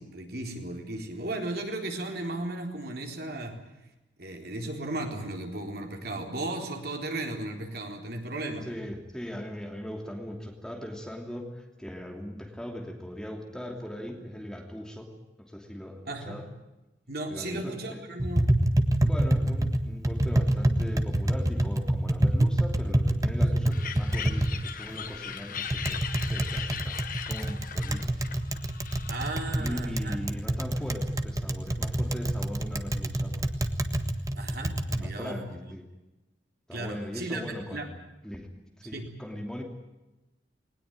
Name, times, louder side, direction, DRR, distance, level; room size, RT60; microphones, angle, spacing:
voice 1, 0.0-3.6 4.2-8.7 16.1-16.4 17.1-18.5 29.1-30.2 34.4-35.6 36.7-37.9 38.9-39.1, right 2 dB, 55° right, 3 dB, 3.9 m, -35 dB
voice 2, 8.6-15.1 15.4-16.0 16.2-16.5 17.3-18.0 19.0-27.0 27.2-28.3 29.6-33.6 34.9-35.8 36.7-37.9 38.2-38.5 38.8-39.6, equal, 5° left, 2 dB, 2.9 m, -39 dB
Tap, 18.2-35.0, right 1 dB, 20° right, 1.5 m, -27 dB
sound 1, 23.7-29.8, left 8 dB, 50° left, 1.4 m, -39 dB
20.0 x 19.5 x 9.0 m, 1.0 s
head